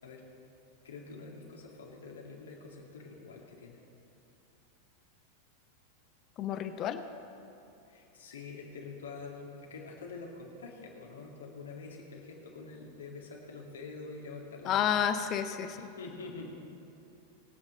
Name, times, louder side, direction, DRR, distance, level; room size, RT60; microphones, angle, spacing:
voice 1, 0.8-3.8 7.9-14.9 15.7-16.5, left 4 dB, 65° left, -1 dB, 2.2 m, -46 dB
voice 2, 6.4-7.0 14.6-15.9, left 9 dB, 35° left, 9 dB, 0.7 m, -30 dB
21.0 x 8.4 x 3.9 m, 2.8 s
figure-of-eight pair, 90°, 0 cm